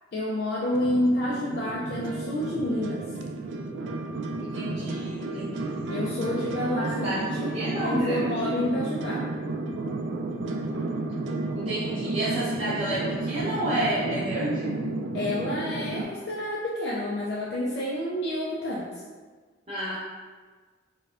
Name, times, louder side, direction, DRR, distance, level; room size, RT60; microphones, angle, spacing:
voice 1, 0.1-3.1 5.9-9.3 15.1-18.9, left 1 dB, 60° left, -5 dB, 0.4 m, -29 dB
sound 1, 0.7-16.0, right 2 dB, 75° right, 0.3 m, -32 dB
voice 2, 4.4-6.0 6.7-7.3 7.5-8.5 11.5-14.7 19.7-20.0, right 1 dB, 35° right, -12 dB, 0.6 m, -30 dB
4.1 x 2.2 x 2.4 m, 1.4 s
head